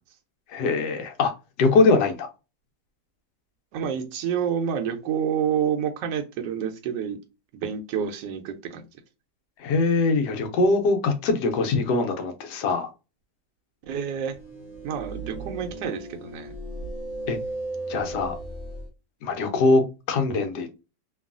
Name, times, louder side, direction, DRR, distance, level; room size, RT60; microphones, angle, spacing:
voice 1, 0.5-1.3 1.6-2.3 9.6-12.9 17.3-17.4 17.9-18.4 19.2-20.8, left 3 dB, 75° left, 1.2 m, -22 dB
voice 2, 3.7-7.2 7.5-8.8 13.9-14.3 14.8-16.5, right 8 dB, 80° right, 1.2 m, -28 dB
sound 1, 14.2-18.9, right 2 dB, 55° left, 0.8 m, -36 dB
3.0 x 2.3 x 2.4 m
omnidirectional pair, 1.9 m